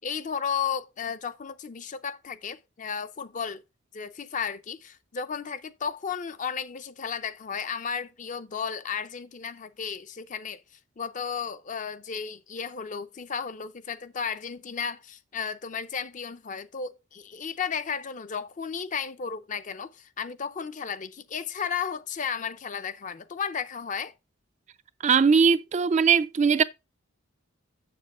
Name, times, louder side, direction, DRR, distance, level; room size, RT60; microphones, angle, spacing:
voice 1, 0.0-3.6 3.9-10.6 11.0-24.1, left 6 dB, 40° left, 0.5 m, -34 dB
voice 2, 25.0-26.6, right 6 dB, 35° right, 0.3 m, -20 dB
7.3 x 6.8 x 3.7 m
head